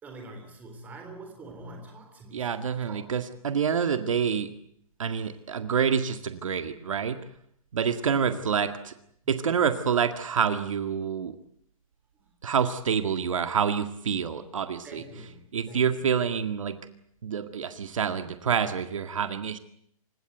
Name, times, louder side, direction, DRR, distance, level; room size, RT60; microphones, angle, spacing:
voice 1, 0.0-2.6 2.9-3.0 5.1-5.3 8.1-8.5 12.2-12.3 14.8-16.0, right 1 dB, 10° right, 3 dB, 3.6 m, -45 dB
voice 2, 2.3-4.5 5.0-7.2 7.7-8.9 9.3-11.4 12.4-15.0 15.5-16.8 17.2-19.6, right 7 dB, 60° right, 9 dB, 2.0 m, -27 dB
28.0 x 17.0 x 9.2 m, 0.69 s
hypercardioid pair, 175°, 19 cm